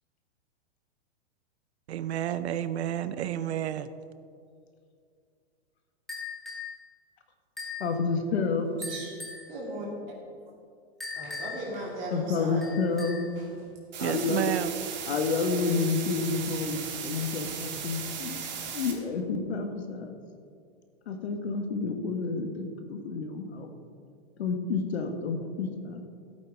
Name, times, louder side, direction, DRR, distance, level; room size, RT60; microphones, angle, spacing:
voice 1, 1.9-3.9 14.0-14.7, right 11 dB, 80° right, 13 dB, 0.6 m, -30 dB
sound 1, 6.1-6.7 7.6-7.9 8.8-9.5 11.0-11.7 12.6-13.3, left 4 dB, ahead, 0.9 m, -38 dB
voice 2, 7.8-8.7 12.1-13.2 14.0-14.5 15.1-18.4 18.7-20.2 21.1-23.7 24.4-26.0, left 4 dB, 75° left, 6 dB, 1.5 m, -29 dB
voice 3, 8.9-9.2 9.5-9.9 11.2-12.7 13.4-13.5, right 1 dB, 25° right, -4 dB, 2.4 m, -37 dB
sound 2, 13.9-18.9, right 7 dB, 45° right, 1.5 m, -37 dB
15.5 x 8.7 x 3.5 m, 2.3 s
supercardioid pair, 180°, 33 cm